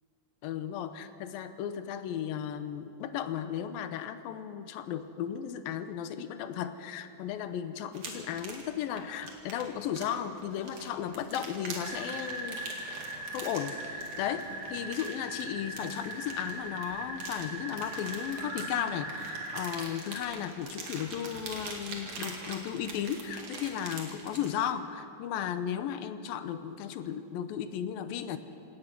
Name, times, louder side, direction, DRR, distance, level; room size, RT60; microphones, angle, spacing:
voice 1, 0.4-12.7 13.1-28.4, left 9 dB, 80° left, 10 dB, 2.6 m, -35 dB
sound 1, 7.9-24.6, right 3 dB, 55° right, 3.5 m, -44 dB
sound 2, 11.8-19.7, right 1 dB, 35° right, 4.6 m, -40 dB
27.0 x 17.5 x 6.1 m, 2.8 s
omnidirectional pair, 4.2 m